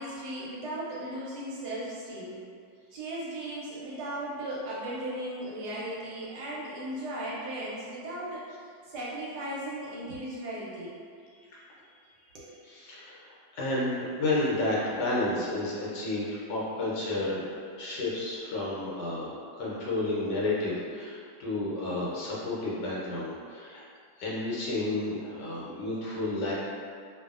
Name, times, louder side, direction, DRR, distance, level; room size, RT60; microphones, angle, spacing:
voice 1, 0.0-2.4 2.9-8.4 8.8-10.9 12.3-12.5, right 1 dB, 75° right, -6 dB, 1.0 m, -36 dB
voice 2, 12.6-17.4 17.7-23.8 24.2-26.5, left 2 dB, 75° left, -6 dB, 1.3 m, -31 dB
2.6 x 2.5 x 2.4 m, 2.2 s
omnidirectional pair, 2.0 m